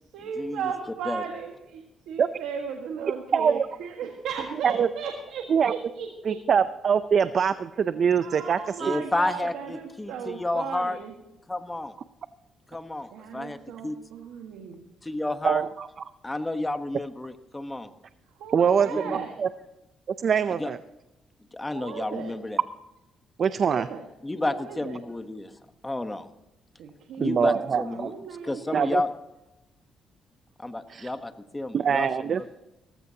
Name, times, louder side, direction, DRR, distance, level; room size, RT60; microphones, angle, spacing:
voice 1, 0.1-6.4 8.2-11.1 13.1-14.8 18.4-19.3 21.7-22.3 23.6-24.0 24.5-25.0 26.8-29.0, right 6 dB, 85° right, 3 dB, 1.5 m, -36 dB
voice 2, 3.3-3.7 4.6-4.9 5.5-5.7 6.2-8.8 15.4-15.9 18.5-19.5 20.2-20.8 23.4-23.9 27.2-28.1 28.7-29.0 30.9-31.1 31.7-32.5, right 7 dB, 55° right, 13 dB, 0.5 m, -23 dB
voice 3, 8.8-11.0 11.5-11.9 12.7-13.6 13.8-13.9 15.0-15.6 16.2-17.9 18.9-19.2 20.6-20.7 21.5-22.6 24.2-25.5 25.8-26.3 27.2-28.1 28.4-29.1 30.6-32.1, left 2 dB, 15° left, 9 dB, 1.2 m, -30 dB
18.0 x 15.0 x 2.9 m, 0.94 s
cardioid pair, 90°, 0 cm